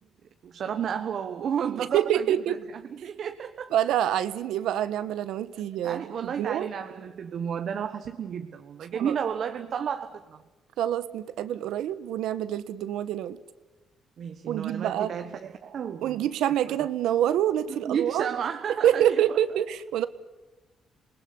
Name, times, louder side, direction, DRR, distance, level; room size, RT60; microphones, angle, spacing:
voice 1, 0.4-3.7 5.5-10.4 14.2-16.3 16.7-16.8 17.8-19.4, right 8 dB, 60° right, 7 dB, 1.4 m, -32 dB
voice 2, 1.9-2.6 3.7-6.7 8.9-9.1 10.8-13.4 14.5-15.1 16.0-18.3 18.8-20.1, right 11 dB, 85° right, 14 dB, 1.3 m, -26 dB
28.0 x 20.0 x 9.7 m, 1.1 s
cardioid pair, 90°, 0 cm